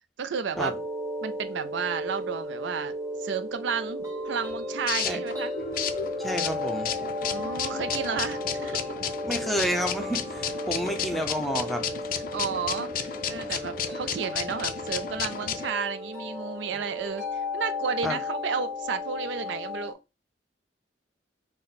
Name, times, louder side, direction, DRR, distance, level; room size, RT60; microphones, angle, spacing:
voice 1, 0.2-0.7 1.2-2.9 3.2-5.5 7.3-8.8 12.3-17.2 17.5-20.0, right 6 dB, 70° right, 0.4 m, -32 dB
sound 1, 0.5-19.9, left 2 dB, 15° right, 1.4 m, -34 dB
sound 2, 4.1-15.7, left 8 dB, 45° left, 0.4 m, -33 dB
voice 2, 6.2-6.9 9.2-11.8 18.0-18.2, equal, ahead, 0.6 m, -30 dB
5.9 x 2.1 x 4.0 m
head